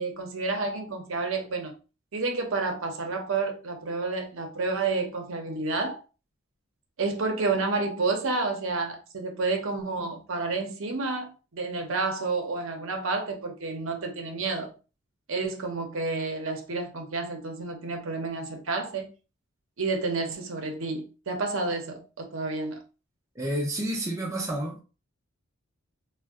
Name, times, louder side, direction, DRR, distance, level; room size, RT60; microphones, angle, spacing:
voice 1, 0.0-1.7 2.1-6.0 7.0-14.7 15.3-19.1 19.8-22.8, right 3 dB, 65° right, 0.7 m, -30 dB
voice 2, 23.4-24.8, right 1 dB, 15° right, 0.5 m, -30 dB
2.5 x 2.1 x 3.5 m
head